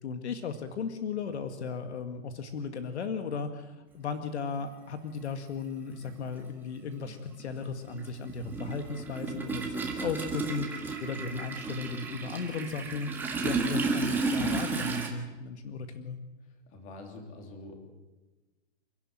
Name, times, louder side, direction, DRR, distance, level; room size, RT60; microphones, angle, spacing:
voice 1, 0.0-16.2, left 5 dB, 60° left, 7 dB, 2.0 m, -36 dB
Toilet flush, 4.6-4.7 6.0-6.1 6.5-15.1, right 3 dB, 5° right, 1.7 m, -33 dB
voice 2, 16.7-17.7, left 2 dB, 20° left, 3 dB, 3.0 m, -46 dB
28.5 x 12.0 x 9.1 m, 1.2 s
hypercardioid pair, 170°, 38 cm